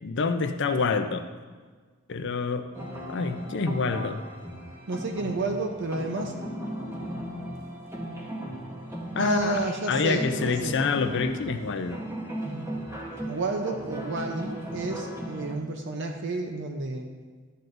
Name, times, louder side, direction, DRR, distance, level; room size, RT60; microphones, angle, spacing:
voice 1, 0.0-1.2 2.1-2.7 3.1-4.2 9.1-12.0, left 4 dB, 60° left, 8 dB, 0.6 m, -27 dB
sound 1, 2.7-15.6, right 1 dB, 10° right, 1.0 m, -37 dB
voice 2, 4.9-6.3 9.2-10.8 13.3-17.1, right 2 dB, 60° right, 4 dB, 0.7 m, -31 dB
12.0 x 7.7 x 2.6 m, 1.4 s
head